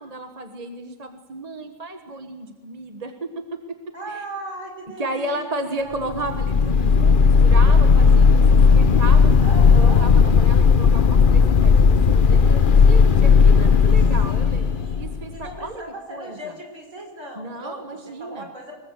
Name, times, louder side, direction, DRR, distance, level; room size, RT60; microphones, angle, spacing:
voice 1, 0.0-3.6 4.1-4.2 5.0-8.4 8.7-9.3 9.8-14.6 15.0-15.8 16.1-16.5 17.3-18.5, right 2 dB, 30° right, 6 dB, 1.5 m, -33 dB
voice 2, 3.9-6.0 9.4-10.0 14.2-17.8 18.2-18.7, right 1 dB, 60° right, 2 dB, 6.0 m, -37 dB
sound 1, 6.1-15.4, left 5 dB, 45° left, 0.9 m, -15 dB
24.0 x 21.0 x 8.3 m, 1.3 s
omnidirectional pair, 1.4 m